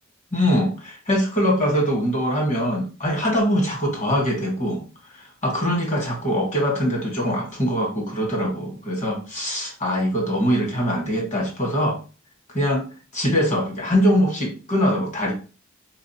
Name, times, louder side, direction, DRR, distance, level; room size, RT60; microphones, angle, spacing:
voice 1, 0.3-4.8 5.4-12.0 12.5-12.8 13.1-15.3, equal, 40° left, 0 dB, 1.4 m, -22 dB
4.0 x 2.5 x 2.8 m, 0.34 s
head